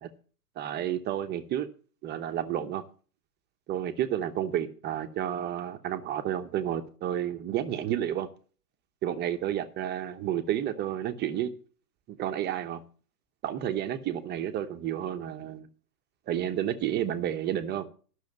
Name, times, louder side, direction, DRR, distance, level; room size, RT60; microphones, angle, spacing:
voice 1, 0.6-1.7 2.0-2.8 3.7-8.3 9.0-11.5 12.1-12.8 13.4-15.7 16.3-17.9, right 11 dB, 20° right, 9 dB, 0.9 m, -31 dB
13.0 x 6.4 x 6.8 m, 0.41 s
hypercardioid pair, 120°, 48 cm